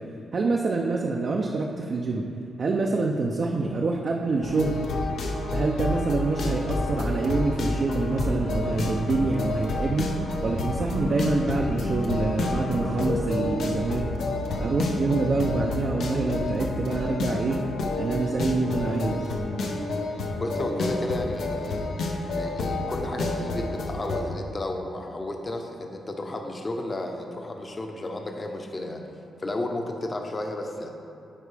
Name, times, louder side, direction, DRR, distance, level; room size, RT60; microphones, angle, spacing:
voice 1, 0.3-2.3 2.6-4.8 5.5-10.2 10.4-14.0 14.6-17.6 17.9-19.3, right 3 dB, 50° right, 0 dB, 0.5 m, -26 dB
sound 1, 4.4-24.2, left 2 dB, 80° left, 0.7 m, -29 dB
sound 2, 6.9-8.9 10.3-14.7, right 1 dB, 70° right, 0.8 m, -41 dB
voice 2, 20.3-21.8 22.3-29.0 29.4-30.9, left 2 dB, 30° left, 3 dB, 0.7 m, -32 dB
9.8 x 4.5 x 3.4 m, 2.7 s
cardioid pair, 85°, 0 cm